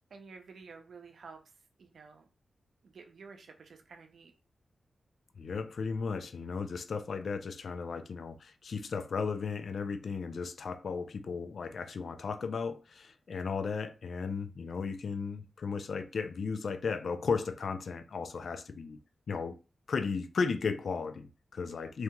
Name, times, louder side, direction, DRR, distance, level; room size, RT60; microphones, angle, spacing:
voice 1, 0.1-1.4 1.8-2.2 2.8-4.3, right 4 dB, 75° right, 0.5 m, -51 dB
voice 2, 5.4-19.0 19.3-19.6 19.9-22.0, left 5 dB, 70° left, 0.3 m, -35 dB
2.8 x 2.8 x 2.2 m
cardioid pair, 55°, 0 cm